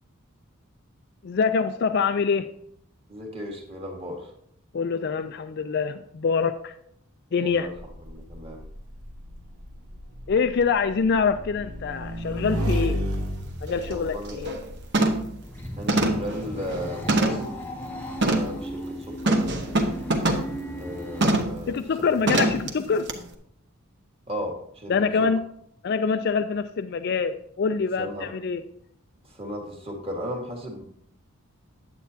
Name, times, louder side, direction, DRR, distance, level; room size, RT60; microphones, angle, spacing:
voice 1, 1.2-2.5 4.7-6.7 7.3-7.7 10.3-13.0 13.6-14.5 21.7-23.1 24.9-25.4 25.8-28.6, left 5 dB, 50° left, 9 dB, 0.3 m, -25 dB
voice 2, 3.1-4.3 7.4-7.7 8.1-8.6 13.9-14.4 15.8-17.5 18.2-19.4 20.8-22.1 24.3-25.3 28.0-28.3 29.2-30.8, equal, 25° right, 1 dB, 1.5 m, -35 dB
Motorcycle / Engine, 7.8-14.9, equal, 80° right, 1.5 m, -32 dB
sound 1, 13.1-13.2 13.7-13.9 14.3-14.6 14.9-15.3 15.9-17.5 18.2-18.6 19.3-20.5 21.2-21.6 22.3-22.7 23.1-23.2, right 2 dB, 50° right, 0.9 m, -24 dB
sound 2, 15.3-21.5, equal, 10° left, 0.8 m, -36 dB
9.4 x 8.1 x 2.8 m, 0.70 s
head